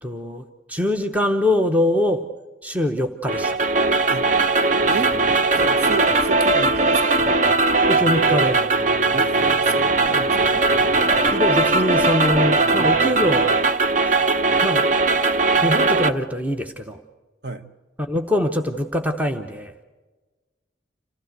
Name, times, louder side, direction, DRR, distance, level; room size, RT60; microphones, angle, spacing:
voice 1, 0.0-2.2 2.6-3.6 7.9-8.6 11.3-13.6 14.1-14.2 14.6-14.8 15.6-17.0 18.0-19.7, left 1 dB, 10° right, 6 dB, 0.8 m, -23 dB
sound 1, 3.3-16.1, right 3 dB, 40° right, 0.6 m, -19 dB
Scratching (performance technique), 4.8-13.3, left 1 dB, 10° left, 1.7 m, -37 dB
voice 2, 4.9-5.2 5.6-7.3 9.1-10.6 12.8-12.9 17.4-17.7, right 2 dB, 55° right, 10 dB, 1.1 m, -31 dB
27.0 x 15.5 x 7.9 m, 1.3 s
head